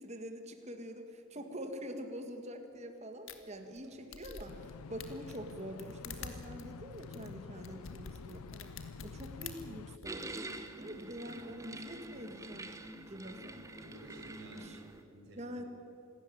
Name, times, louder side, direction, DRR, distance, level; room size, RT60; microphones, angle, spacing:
voice 1, 0.0-8.7 9.0-10.5 10.8-12.7 13.1-13.6 14.5-14.8 15.3-15.6, equal, 30° right, 6 dB, 1.7 m, -45 dB
sound 1, 3.3-3.4 3.8-3.9 4.1-4.7 5.0-10.1, left 5 dB, 60° left, 1.9 m, -48 dB
sound 2, 4.5-10.0, left 5 dB, 80° left, 0.4 m, -49 dB
sound 3, 10.1-15.0, right 2 dB, 15° right, 1.0 m, -46 dB
voice 2, 13.7-15.5, right 1 dB, 50° right, -1 dB, 5.6 m, -54 dB
26.5 x 13.5 x 9.8 m, 2.7 s
head